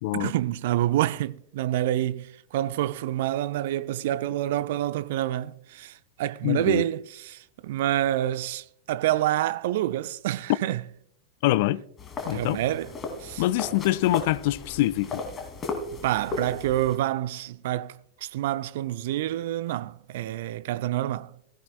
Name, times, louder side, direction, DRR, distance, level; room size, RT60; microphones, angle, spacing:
voice 1, 0.1-10.8 12.3-13.4 16.0-21.3, right 13 dB, 55° right, 0.5 m, -28 dB
voice 2, 6.4-6.8 11.4-11.8 12.3-12.6 13.4-15.2, left 16 dB, 50° left, 0.4 m, -24 dB
sound 1, 12.0-17.0, left 3 dB, 20° left, 2.6 m, -36 dB
16.5 x 15.0 x 2.3 m
figure-of-eight pair, 90°, 0 cm